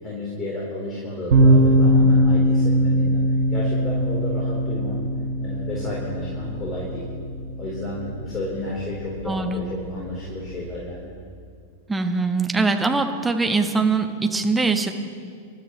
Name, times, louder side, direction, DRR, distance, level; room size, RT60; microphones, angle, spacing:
voice 1, 0.0-5.0 5.4-7.0 7.6-11.1, left 1 dB, 25° left, -5 dB, 4.0 m, -32 dB
sound 1, 1.3-10.7, equal, 60° right, 4.0 m, -22 dB
voice 2, 9.3-9.7 11.9-14.9, right 3 dB, 10° right, 5 dB, 1.2 m, -22 dB
27.5 x 13.0 x 3.2 m, 2.2 s
figure-of-eight pair, 95°, 0 cm